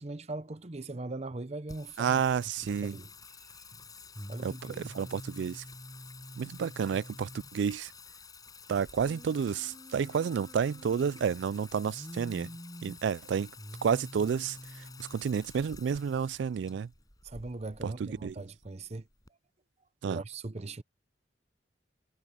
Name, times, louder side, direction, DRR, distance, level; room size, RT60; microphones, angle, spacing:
voice 1, 0.0-2.2 2.6-3.1 3.4-3.8 4.3-4.8 17.2-19.1 20.0-20.8, right 2 dB, 35° right, 0.7 m, -40 dB
Singing, 1.7-19.3, left 2 dB, 20° left, 5.7 m, -48 dB
voice 2, 2.0-2.9 4.4-5.6 6.4-7.9 8.7-12.5 12.8-13.5 13.8-14.6 15.0-16.9 17.8-18.3 20.0-20.2, right 7 dB, 65° right, 0.3 m, -30 dB
head